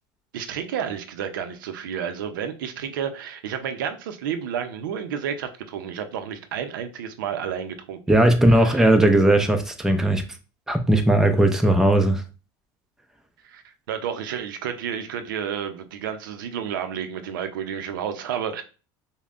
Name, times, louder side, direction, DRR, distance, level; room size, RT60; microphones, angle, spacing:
voice 1, 0.3-8.2 8.5-8.9 13.5-13.6 13.9-18.6, right 8 dB, 90° right, 0.6 m, -31 dB
voice 2, 8.1-10.2 10.7-12.2, right 1 dB, 5° right, 0.6 m, -18 dB
5.2 x 2.2 x 2.5 m
supercardioid pair, 110°, 11 cm